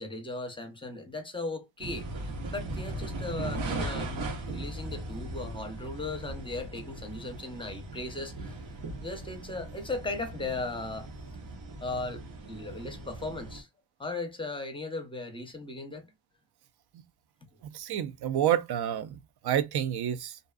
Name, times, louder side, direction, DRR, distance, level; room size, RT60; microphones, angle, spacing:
voice 1, 0.0-2.1 2.5-8.6 9.0-11.1 11.8-12.2 12.5-13.7 14.0-16.0, left 2 dB, 10° left, 0.6 m, -37 dB
sound 1, 1.8-13.6, right 2 dB, 80° right, 1.0 m, -38 dB
voice 2, 17.6-20.4, right 10 dB, 60° right, 0.5 m, -29 dB
2.6 x 2.3 x 2.3 m
cardioid pair, 85°, 44 cm